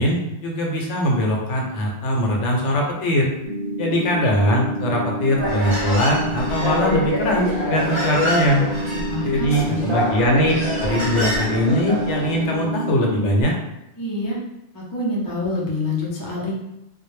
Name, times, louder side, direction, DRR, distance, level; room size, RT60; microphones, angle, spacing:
voice 1, 0.0-3.3 3.8-8.6 9.2-10.5 10.8-13.5, left 1 dB, 80° left, 0 dB, 0.9 m, -21 dB
sound 1, 3.4-13.4, right 1 dB, 75° right, 0.9 m, -28 dB
Human voice, 5.3-12.4, left 1 dB, 30° right, 0.7 m, -26 dB
voice 2, 9.1-9.9 14.0-14.4 14.7-16.5, left 2 dB, 30° left, -4 dB, 0.4 m, -26 dB
2.1 x 2.1 x 3.1 m, 0.84 s
omnidirectional pair, 1.2 m